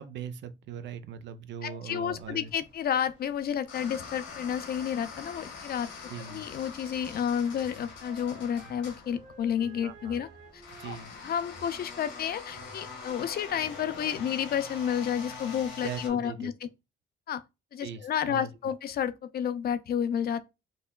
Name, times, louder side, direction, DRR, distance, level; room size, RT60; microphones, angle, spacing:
voice 1, 0.0-2.5 6.1-6.4 9.8-10.2 10.8-11.1 15.8-16.5 17.8-18.5, right 7 dB, 65° right, 0.5 m, -40 dB
voice 2, 1.6-5.9 6.3-10.3 10.5-11.0 11.2-16.5 17.3-17.4 17.7-20.4, left 8 dB, 50° left, 0.4 m, -31 dB
sound 1, 2.0-16.1, left 4 dB, 85° left, 1.2 m, -45 dB
sound 2, 7.0-12.2 12.5-14.3, right 3 dB, 40° right, 1.1 m, -52 dB
5.3 x 2.1 x 2.2 m
cardioid pair, 90°, 20 cm